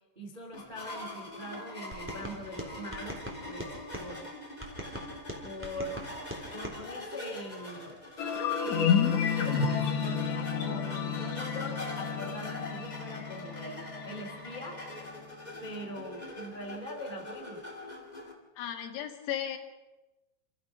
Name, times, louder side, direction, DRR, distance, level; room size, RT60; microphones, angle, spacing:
voice 1, 0.1-4.3 5.4-6.0 6.5-8.0 8.6-9.2 9.7-14.8 15.6-17.6, equal, 75° right, 3 dB, 0.4 m, -42 dB
sound 1, 0.5-18.3, left 1 dB, 25° left, 0.9 m, -42 dB
sound 2, 1.9-4.1 4.6-6.8, equal, 5° right, 2.3 m, -42 dB
sound 3, 8.2-15.2, left 7 dB, 60° left, 2.1 m, -31 dB
voice 2, 18.6-19.6, left 10 dB, 90° left, 5 dB, 4.5 m, -35 dB
27.5 x 15.5 x 6.1 m, 1.0 s
omnidirectional pair, 5.8 m